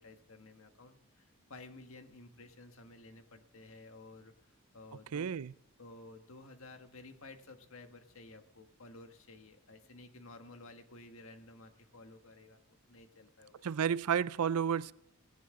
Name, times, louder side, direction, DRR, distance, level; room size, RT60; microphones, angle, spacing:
voice 1, 0.0-5.4 5.8-12.6 12.9-13.6, left 2 dB, 70° left, 1.5 m, -54 dB
voice 2, 5.1-5.5 13.6-14.9, right 7 dB, 85° right, 0.5 m, -31 dB
19.0 x 17.0 x 3.7 m
head